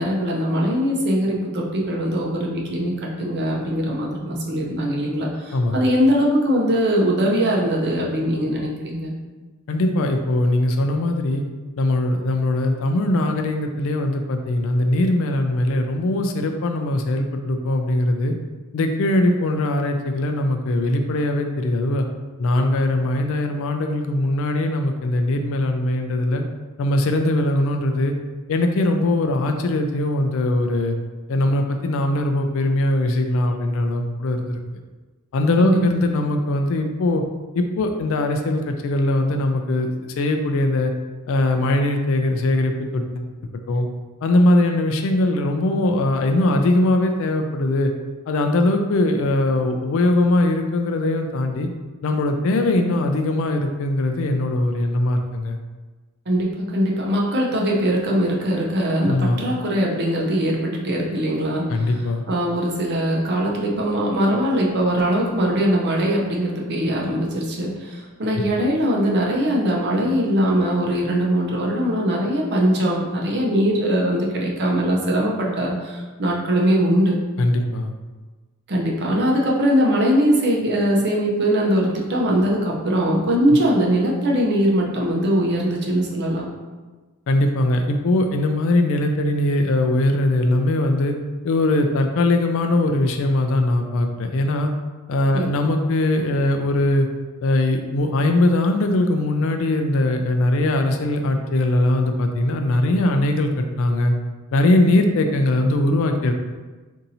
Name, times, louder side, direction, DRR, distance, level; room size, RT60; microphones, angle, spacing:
voice 1, 0.0-9.1 35.6-36.0 56.3-62.0 62.3-77.2 78.7-86.4 95.3-95.5, equal, 50° right, -2 dB, 0.6 m, -21 dB
voice 2, 9.7-11.4 11.8-18.3 18.7-22.1 22.4-26.4 26.8-28.1 28.5-30.9 31.3-34.6 35.3-37.2 37.5-39.9 40.2-40.9 41.3-43.2 43.7-43.9 44.2-47.9 48.3-51.7 52.0-55.6 59.1-59.4 61.7-62.2 77.4-77.9 87.3-91.1 91.4-94.7 95.1-97.1 97.4-104.1 104.5-106.3, left 1 dB, 65° left, 4 dB, 0.3 m, -20 dB
2.7 x 2.6 x 4.0 m, 1.3 s
head